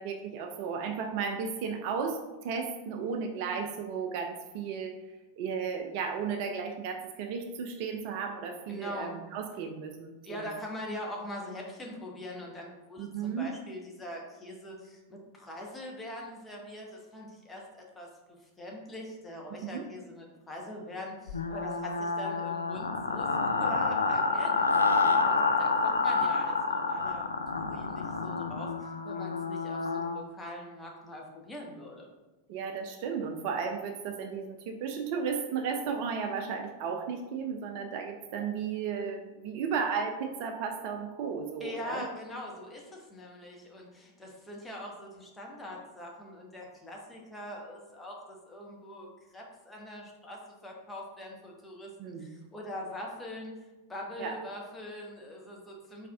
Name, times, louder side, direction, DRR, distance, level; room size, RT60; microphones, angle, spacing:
voice 1, 0.0-5.0 5.4-10.5 13.0-13.5 19.5-19.9 32.5-42.0 52.0-52.3 54.2-54.4, right 6 dB, 45° right, 5 dB, 0.4 m, -34 dB
voice 2, 8.7-9.1 10.2-18.1 18.6-32.1 41.6-51.9 52.2-56.1, left 1 dB, 10° left, -1 dB, 1.0 m, -43 dB
sound 1, 21.3-30.2, left 4 dB, 75° left, 0.3 m, -28 dB
4.6 x 4.2 x 2.3 m, 1.1 s
figure-of-eight pair, 90°, 0 cm